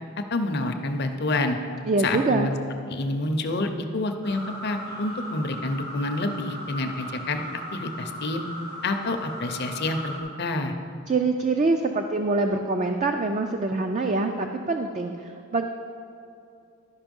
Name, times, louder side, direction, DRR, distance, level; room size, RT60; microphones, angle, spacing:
voice 1, 0.3-1.6 2.0-2.5 2.9-7.4 7.7-8.5 8.8-10.7, left 2 dB, 45° left, 6 dB, 0.6 m, -28 dB
voice 2, 1.9-2.5 11.1-15.6, right 3 dB, 30° right, 4 dB, 0.3 m, -25 dB
sound 1, 4.2-10.2, equal, 85° right, 2.1 m, -37 dB
11.5 x 5.5 x 5.3 m, 2.6 s
head